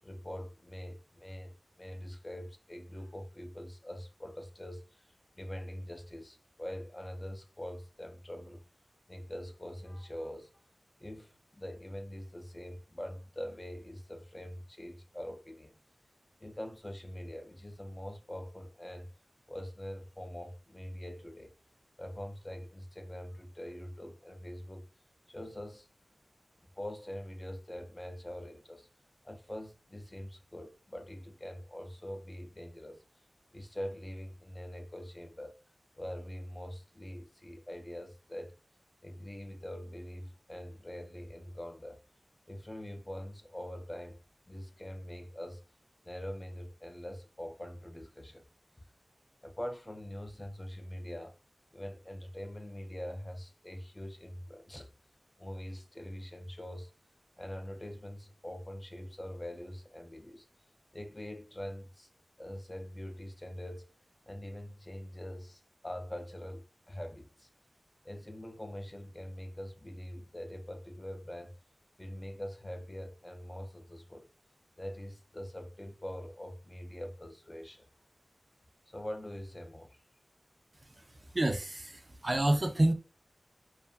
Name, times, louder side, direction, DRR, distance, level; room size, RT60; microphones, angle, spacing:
voice 1, 0.0-5.1 5.4-8.6 9.1-10.6 11.0-15.8 16.4-19.1 19.5-21.5 22.0-24.9 25.3-25.9 26.7-28.9 29.2-33.0 33.5-35.6 36.0-38.6 39.0-42.0 42.5-44.2 44.5-45.6 46.0-48.4 49.4-51.3 51.7-54.9 55.4-56.9 57.4-60.5 60.9-62.1 62.4-63.9 64.3-67.5 68.0-71.6 72.0-74.3 74.8-77.9 78.9-80.0, equal, 20° left, 0.4 m, -43 dB
voice 2, 81.3-82.9, right 1 dB, 40° right, 0.4 m, -28 dB
2.5 x 2.3 x 2.2 m
wide cardioid pair, 70°, 0 cm